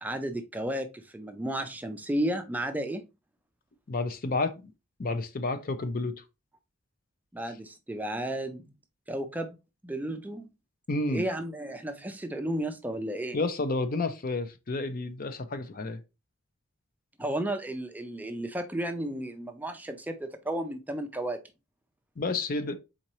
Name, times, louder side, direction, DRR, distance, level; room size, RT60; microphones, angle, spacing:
voice 1, 0.0-3.0 7.3-8.7 9.1-9.6 9.8-10.5 11.1-13.4 17.2-21.4, right 1 dB, 10° right, 0.4 m, -33 dB
voice 2, 3.9-4.7 5.0-6.1 10.9-11.2 13.3-16.0 22.2-22.7, left 3 dB, 45° left, 0.5 m, -30 dB
4.3 x 3.8 x 2.9 m
head